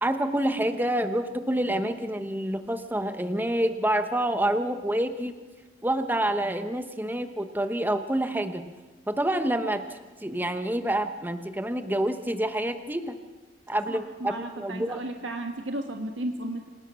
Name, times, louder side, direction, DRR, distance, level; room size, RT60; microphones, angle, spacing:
voice 1, 0.0-5.3 5.8-8.6 9.1-13.1 13.7-15.0, right 1 dB, 10° right, 8 dB, 1.1 m, -27 dB
voice 2, 13.9-16.7, right 1 dB, 75° right, 4 dB, 1.5 m, -34 dB
25.5 x 18.5 x 6.3 m, 1.2 s
head